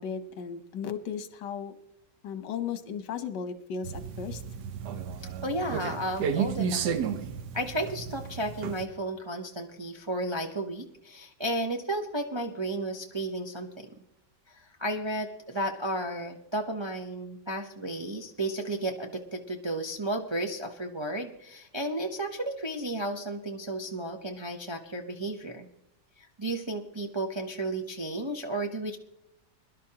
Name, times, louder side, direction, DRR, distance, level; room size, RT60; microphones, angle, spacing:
voice 1, 0.0-1.7 2.2-4.4, left 7 dB, 80° left, 10 dB, 1.6 m, -35 dB
sound 1, 3.8-8.9, right 7 dB, 70° right, 1.3 m, -33 dB
voice 2, 5.4-7.2 7.5-13.9 14.5-25.7 26.2-29.0, right 1 dB, 45° right, 2 dB, 0.3 m, -33 dB
21.5 x 11.5 x 2.9 m, 0.83 s
omnidirectional pair, 1.8 m